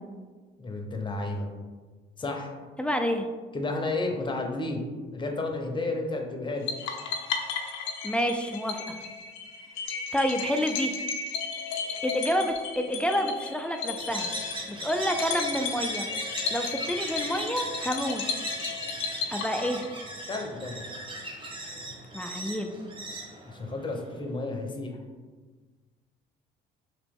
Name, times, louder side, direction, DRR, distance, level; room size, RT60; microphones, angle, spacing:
voice 1, 0.6-1.5 2.2-2.5 3.5-4.8 5.1-6.7 20.3-20.9 23.5-25.0, left 2 dB, 25° left, 2 dB, 0.7 m, -32 dB
voice 2, 2.8-3.3 8.0-9.0 10.1-11.0 12.0-14.3 14.8-16.1 16.5-18.2 19.3-19.8 22.1-22.7, equal, 5° left, 5 dB, 0.3 m, -28 dB
sound 1, 6.7-20.1, left 5 dB, 75° left, 0.5 m, -34 dB
sound 2, 14.0-24.2, right 2 dB, 25° right, 0.7 m, -38 dB
3.0 x 2.9 x 3.4 m, 1.4 s
supercardioid pair, 70°, 20 cm